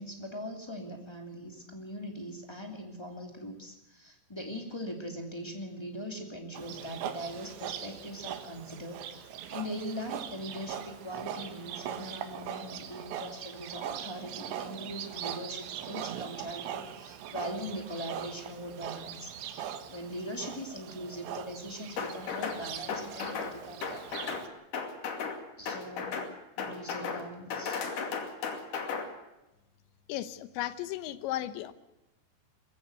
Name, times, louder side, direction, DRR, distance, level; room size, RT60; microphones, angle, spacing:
voice 1, 0.0-24.4 25.6-26.2 26.6-27.8, equal, 15° left, 3 dB, 0.9 m, -41 dB
Livestock farm animals working animals, 6.5-24.5, right 9 dB, 70° right, 3.5 m, -41 dB
sound 1, 22.0-22.6 22.9-23.5 23.8-24.5 24.7-25.4 25.7-26.3 26.6-27.2 27.5-29.1, left 5 dB, 50° left, 3.4 m, -35 dB
voice 2, 30.1-31.7, left 13 dB, 75° left, 13 dB, 3.1 m, -35 dB
21.5 x 16.0 x 7.9 m, 0.97 s
omnidirectional pair, 5.7 m